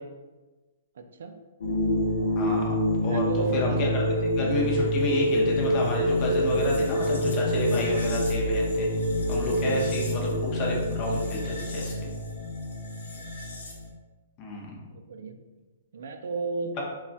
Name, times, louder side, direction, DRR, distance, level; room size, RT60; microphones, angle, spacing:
voice 1, 1.0-1.4 3.0-3.7 9.6-9.8 13.2-13.3 14.9-15.4 15.9-17.0, right 4 dB, 70° right, 6 dB, 0.3 m, -34 dB
sound 1, 1.6-13.9, left 1 dB, 90° left, 0.6 m, -26 dB
voice 2, 2.4-4.0 4.4-8.9 9.3-12.1 14.4-14.7, left 1 dB, 30° left, -2 dB, 0.7 m, -30 dB
2.3 x 2.1 x 3.9 m, 1.2 s
hypercardioid pair, 155°, 0 cm